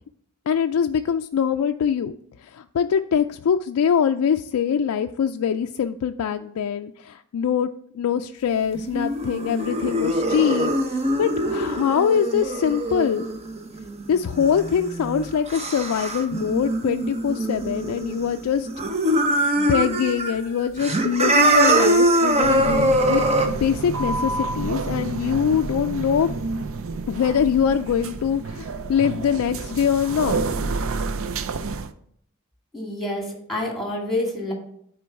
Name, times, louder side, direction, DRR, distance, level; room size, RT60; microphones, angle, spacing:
voice 1, 0.5-2.1 2.4-7.7 7.9-13.3 14.1-18.7 19.6-26.3 27.1-30.4, left 7 dB, 85° left, 6 dB, 0.3 m, -23 dB
sound 1, 8.7-18.4 18.7-20.3 20.6-23.5, right 1 dB, 30° right, 0.8 m, -23 dB
sound 2, 22.4-31.9, right 3 dB, 65° right, 0.5 m, -29 dB
voice 2, 32.7-34.5, left 1 dB, ahead, 0 dB, 2.4 m, -28 dB
9.9 x 4.4 x 4.6 m, 0.68 s
head